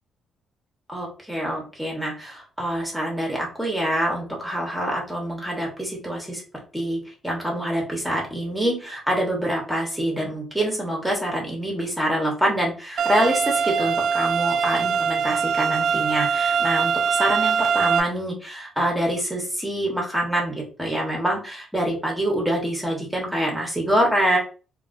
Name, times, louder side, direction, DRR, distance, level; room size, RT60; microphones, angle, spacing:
voice 1, 0.9-6.4 6.7-24.4, right 1 dB, 5° right, -2 dB, 1.1 m, -25 dB
sound 1, 13.0-18.0, right 6 dB, 65° right, 0.4 m, -22 dB
3.2 x 2.4 x 2.5 m, 0.36 s
cardioid pair, 90°, 0 cm